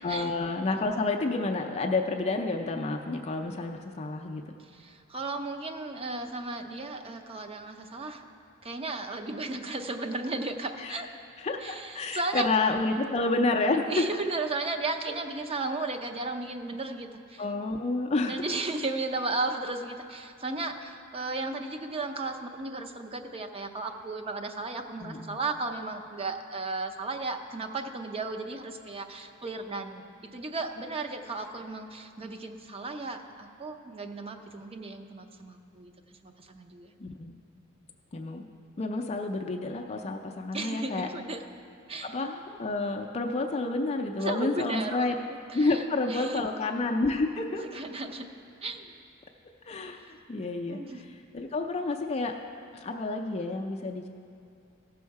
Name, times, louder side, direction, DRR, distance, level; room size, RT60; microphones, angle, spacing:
voice 1, 0.0-4.4 10.8-10.9 11.4-14.0 17.4-18.3 25.0-25.4 37.0-37.4 38.1-38.4 38.8-41.1 42.0-45.2 45.5-47.7 49.7-50.8 51.3-52.3 52.7-54.1, left 3 dB, 30° left, 2 dB, 0.4 m, -29 dB
voice 2, 4.6-8.2 8.6-11.1 11.6-12.5 13.9-17.5 18.3-35.9 36.2-36.9 40.5-41.4 41.9-42.1 44.2-46.4 47.6-48.3 48.6-49.0 50.0-50.1 50.7-51.1, right 3 dB, 30° right, 5 dB, 0.6 m, -35 dB
16.0 x 6.3 x 4.7 m, 2.5 s
head